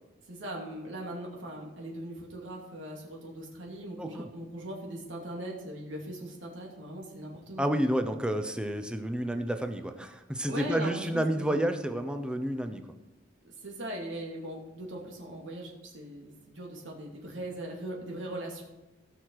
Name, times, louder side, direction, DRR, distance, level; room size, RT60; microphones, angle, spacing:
voice 1, 0.3-7.7 10.5-11.6 13.6-18.6, right 1 dB, 85° right, -2 dB, 2.6 m, -40 dB
voice 2, 4.0-4.3 7.6-12.8, right 1 dB, 5° right, 6 dB, 0.7 m, -30 dB
16.5 x 6.5 x 4.7 m, 1.1 s
head